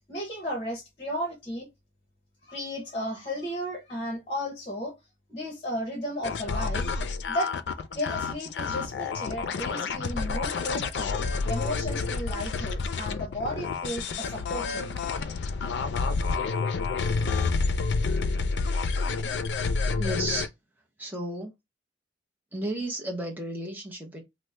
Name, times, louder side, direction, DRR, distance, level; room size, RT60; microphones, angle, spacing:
voice 1, 0.0-1.7 2.4-4.9 5.3-7.0 7.3-11.1 11.5-14.9, equal, 30° left, 0.9 m, -34 dB
sound 1, 6.2-20.5, left 4 dB, 80° left, 0.4 m, -29 dB
voice 2, 20.0-20.5 21.0-21.5 22.5-24.2, right 1 dB, 10° right, 0.7 m, -33 dB
3.1 x 2.0 x 3.2 m
head